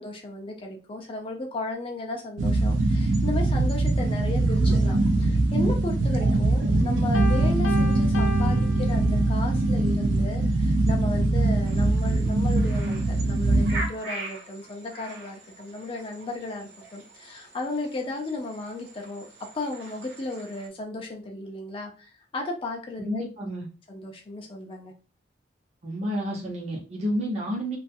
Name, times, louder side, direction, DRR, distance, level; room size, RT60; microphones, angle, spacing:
voice 1, 0.0-19.3 19.5-23.3 23.9-24.9, left 2 dB, 30° left, 0 dB, 0.4 m, -35 dB
sound 1, 2.4-13.9, right 2 dB, 80° right, 0.4 m, -22 dB
Piano, 7.1-9.5, equal, 85° left, 0.5 m, -35 dB
sound 2, 11.6-20.7, right 2 dB, 60° right, 0.9 m, -42 dB
voice 2, 23.0-23.7 25.8-27.8, equal, 35° right, -4 dB, 0.7 m, -30 dB
2.3 x 2.3 x 2.6 m, 0.34 s
head